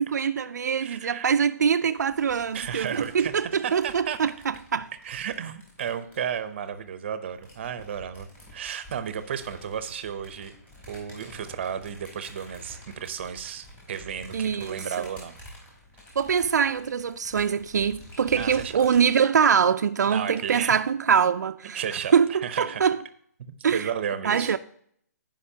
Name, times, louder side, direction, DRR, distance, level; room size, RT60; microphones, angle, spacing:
voice 1, 0.0-4.9 14.3-15.1 16.2-21.8 22.1-23.0 23.6-23.9 24.2-24.6, right 7 dB, 80° right, 0.4 m, -24 dB
voice 2, 0.8-1.3 2.5-4.2 5.0-10.5 10.9-15.4 18.3-18.9 20.1-20.8 21.7-22.9 23.5-24.6, right 8 dB, 40° right, 0.7 m, -33 dB
sound 1, 2.0-6.8 7.3-19.1, equal, 15° left, 2.7 m, -48 dB
15.0 x 5.2 x 2.8 m
hypercardioid pair, 165°, 9 cm